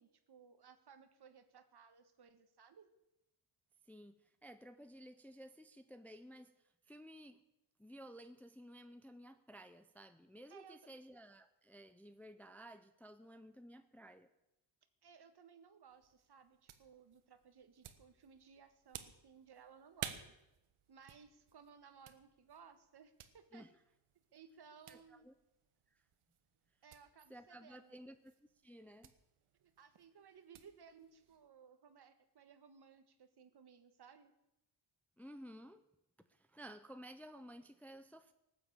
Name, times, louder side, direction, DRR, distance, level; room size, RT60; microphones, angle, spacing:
voice 1, 0.0-2.9 10.5-10.8 15.0-20.3 20.9-23.7 24.3-25.3 26.8-28.1 29.6-34.3, right 6 dB, 50° right, 9 dB, 1.5 m, -61 dB
voice 2, 3.9-7.4 7.8-14.3 23.5-23.7 24.9-25.3 25.9-26.0 27.3-28.3 28.6-29.1 35.2-35.8 36.3-38.3, equal, 5° left, 9 dB, 0.5 m, -55 dB
sound 1, 15.9-31.5, right 9 dB, 80° right, 1.4 m, -55 dB
19.0 x 7.3 x 8.5 m, 0.92 s
wide cardioid pair, 140°, 50 cm